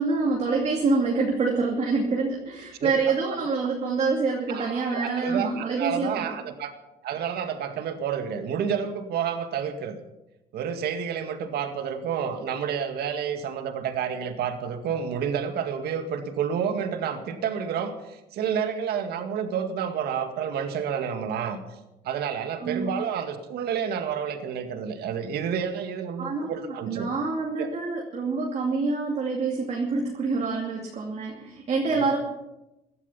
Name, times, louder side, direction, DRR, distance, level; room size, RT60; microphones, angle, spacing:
voice 1, 0.0-6.3 22.6-22.9 26.2-32.2, right 4 dB, 40° right, -1 dB, 2.6 m, -26 dB
voice 2, 2.8-3.1 4.5-6.7 7.0-10.0 10.5-21.6 22.0-27.1 27.6-27.7 31.9-32.1, right 7 dB, 70° right, 7 dB, 1.9 m, -30 dB
16.5 x 12.0 x 5.7 m, 0.95 s
cardioid pair, 110°, 17 cm